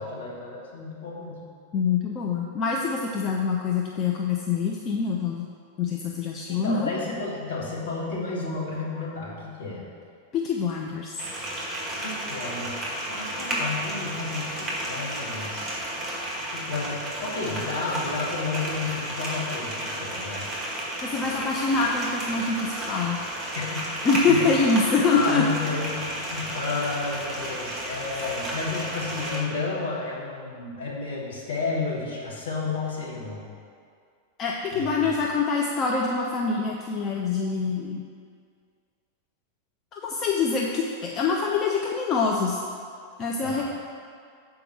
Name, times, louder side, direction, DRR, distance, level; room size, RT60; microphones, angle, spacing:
voice 1, 0.0-1.5 6.5-9.9 12.0-15.8 16.5-20.5 23.6-23.8 24.3-24.6 25.1-33.5 34.7-35.1 43.4-43.6, left 4 dB, 60° left, -5 dB, 2.0 m, -32 dB
voice 2, 1.7-5.5 5.8-6.9 10.3-11.2 21.0-23.2 24.0-25.5 28.2-28.3 34.4-38.0 39.9-42.6 43.2-43.6, left 4 dB, 30° left, -1 dB, 0.6 m, -25 dB
sound 1, 11.2-29.4, right 1 dB, 5° right, 2.0 m, -32 dB
6.9 x 4.7 x 6.3 m, 2.2 s
figure-of-eight pair, 90°, 0 cm